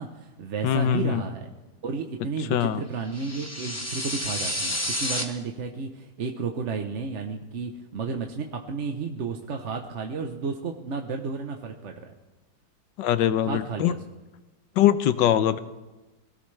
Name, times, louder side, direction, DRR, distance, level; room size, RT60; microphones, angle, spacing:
voice 1, 0.0-1.5 1.8-12.1 13.4-14.0, right 5 dB, 45° right, 4 dB, 1.0 m, -32 dB
voice 2, 0.6-1.2 2.5-2.8 13.0-13.9 14.8-15.6, left 11 dB, 70° left, 13 dB, 1.3 m, -22 dB
sound 1, 3.1-5.2, left 1 dB, 10° left, 1.2 m, -30 dB
22.5 x 17.0 x 3.3 m, 1.1 s
omnidirectional pair, 2.1 m